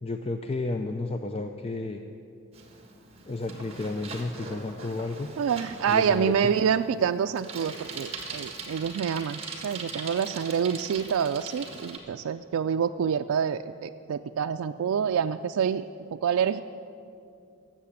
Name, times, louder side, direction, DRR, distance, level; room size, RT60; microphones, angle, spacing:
voice 1, 0.0-2.0 3.3-5.3 5.9-6.4, left 2 dB, 25° left, 6 dB, 0.4 m, -32 dB
Bicycle, 2.5-12.0, right 4 dB, 30° right, 1.5 m, -41 dB
voice 2, 5.4-15.9 16.1-16.6, right 7 dB, 85° right, 7 dB, 0.3 m, -27 dB
14.0 x 7.5 x 10.0 m, 2.6 s
head